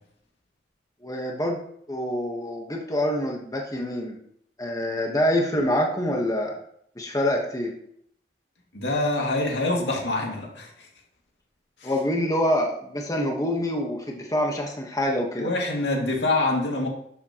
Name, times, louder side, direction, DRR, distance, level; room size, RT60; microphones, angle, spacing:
voice 1, 1.0-1.6 1.9-4.1 4.6-6.6 7.0-7.7 11.8-15.5, left 1 dB, 20° left, 1 dB, 1.2 m, -26 dB
voice 2, 8.7-10.7 11.8-11.9 15.4-16.9, left 2 dB, 85° left, 0 dB, 2.3 m, -25 dB
12.0 x 7.3 x 3.0 m, 0.69 s
head